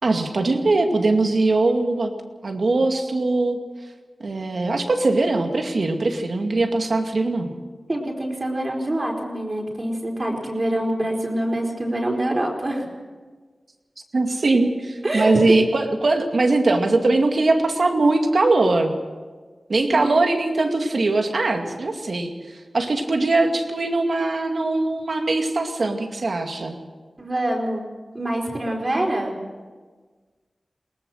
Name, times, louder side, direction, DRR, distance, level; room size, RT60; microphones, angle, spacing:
voice 1, 0.0-2.1 2.4-3.6 4.2-7.5 14.1-18.9 19.7-26.8, right 2 dB, 70° right, 4 dB, 2.3 m, -21 dB
voice 2, 7.9-12.9 15.0-15.3 19.9-20.0 27.2-27.9 28.1-29.3, right 1 dB, 40° right, 0 dB, 4.4 m, -25 dB
21.5 x 19.0 x 6.5 m, 1.4 s
wide cardioid pair, 60°, 0 cm